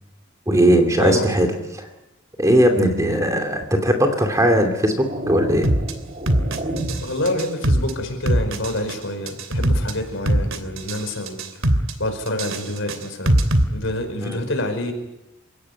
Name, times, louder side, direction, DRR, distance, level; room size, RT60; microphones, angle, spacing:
voice 1, 0.5-1.5 2.4-5.7 14.2-14.4, equal, 15° right, 4 dB, 2.7 m, -18 dB
sound 1, 3.6-3.8 4.5-7.3, right 1 dB, 30° right, 3.2 m, -30 dB
sound 2, 5.6-5.9 6.3-7.0 7.3-7.9 8.3-8.9 9.3-9.9 10.3-11.0 11.3-11.9 12.3-13.6, right 1 dB, 65° right, 2.8 m, -20 dB
voice 2, 6.9-11.4 12.0-13.3 13.7-14.9, left 1 dB, 60° left, 6 dB, 5.1 m, -27 dB
28.5 x 17.0 x 9.7 m, 0.95 s
head